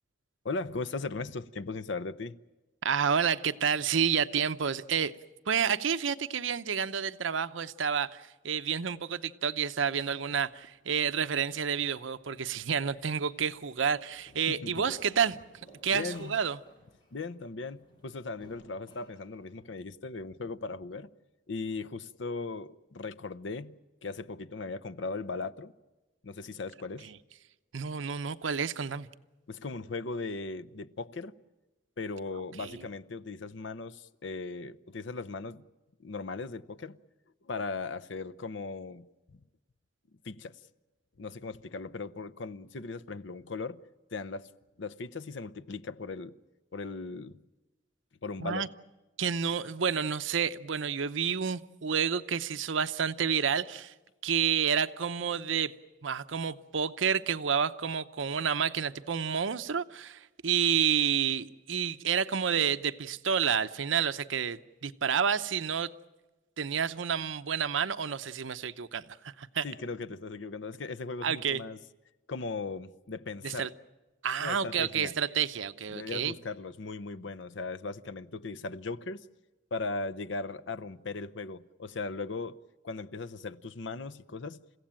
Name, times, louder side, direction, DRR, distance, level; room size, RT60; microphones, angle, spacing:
voice 1, 0.4-2.4 14.5-14.9 15.9-16.4 17.1-21.1 21.5-25.7 26.2-27.1 29.5-31.3 32.0-35.6 36.0-37.0 37.4-39.4 40.2-40.6 41.2-43.8 44.1-44.5 44.8-46.4 46.7-47.4 48.2-48.7 69.6-71.8 72.3-73.7 74.4-75.1 75.9-79.3 79.7-82.6 82.8-84.6, left 3 dB, 70° left, 0.7 m, -38 dB
voice 2, 2.8-5.1 5.5-15.4 15.8-16.6 27.7-29.1 32.6-32.7 48.4-48.7 49.2-53.9 54.2-55.7 56.0-65.9 66.6-69.7 71.2-71.6 73.4-73.7 74.2-76.3, right 7 dB, 80° right, 0.7 m, -29 dB
Glass, 9.7-19.6, equal, 25° left, 7.5 m, -58 dB
29.5 x 16.0 x 8.9 m
head